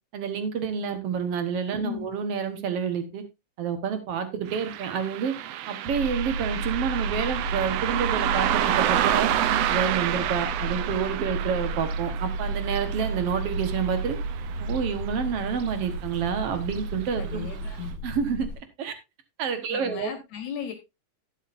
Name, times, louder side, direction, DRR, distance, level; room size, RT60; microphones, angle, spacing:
voice 1, 0.1-3.2 3.6-5.3 5.7-9.3 9.7-14.2 14.6-17.5 18.0-18.5 18.8-18.9 19.4-20.1, right 7 dB, 55° right, 9 dB, 2.0 m, -28 dB
Car passing by, 4.5-15.3 15.6-15.7 16.6-16.8 17.3-17.4 17.9-18.0, right 12 dB, 80° right, 1.4 m, -29 dB
sound 1, 5.9-18.6, right 2 dB, 40° right, 4.4 m, -32 dB
voice 2, 17.2-17.9 19.7-20.7, left 8 dB, 70° left, 8 dB, 2.5 m, -36 dB
12.0 x 9.9 x 2.6 m, 0.23 s
omnidirectional pair, 3.7 m